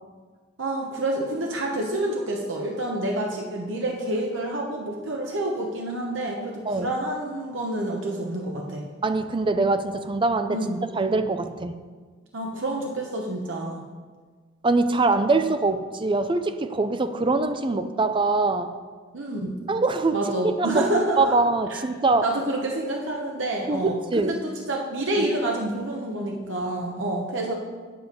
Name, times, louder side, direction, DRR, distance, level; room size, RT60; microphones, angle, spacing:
voice 1, 0.6-8.8 10.5-10.8 12.3-13.8 19.1-19.6 20.1-21.3 21.7-21.8 22.2-27.5, right 1 dB, 80° right, 0 dB, 1.0 m, -28 dB
voice 2, 9.0-10.6 10.9-11.7 14.6-18.7 19.7-20.2 20.6-20.8 21.2-22.3 23.7-24.3 25.2-25.3, right 3 dB, 25° right, 10 dB, 0.5 m, -23 dB
7.9 x 7.8 x 5.2 m, 1.5 s
head